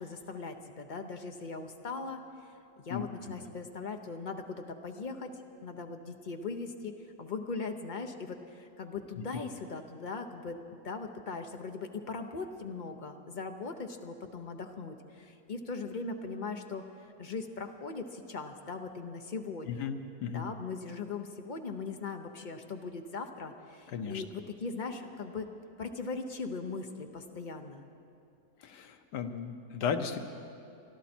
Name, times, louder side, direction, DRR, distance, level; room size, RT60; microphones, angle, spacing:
voice 1, 0.0-2.2 2.8-5.3 5.6-10.6 10.8-16.8 17.2-19.9 20.3-25.5 25.8-27.8, left 4 dB, 40° left, 5 dB, 0.7 m, -39 dB
voice 2, 19.7-20.4 23.9-24.2 28.6-30.2, left 7 dB, 90° left, 7 dB, 1.5 m, -35 dB
24.5 x 12.5 x 4.4 m, 2.6 s
omnidirectional pair, 1.7 m